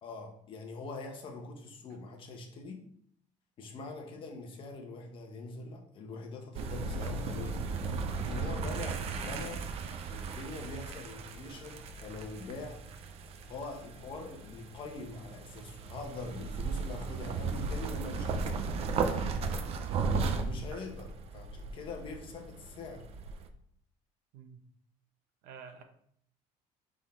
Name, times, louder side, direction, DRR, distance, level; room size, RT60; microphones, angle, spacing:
voice 1, 0.0-2.8 3.6-7.6 8.3-9.7 10.1-12.8 13.5-18.5 20.4-21.1 21.3-23.1, left 3 dB, 35° left, 3 dB, 1.1 m, -43 dB
sound 1, 6.5-23.5, right 4 dB, 45° right, 0.6 m, -36 dB
voice 2, 25.4-25.8, right 6 dB, 85° right, 6 dB, 1.1 m, -48 dB
6.3 x 3.8 x 4.4 m, 0.66 s
cardioid pair, 180°, 15 cm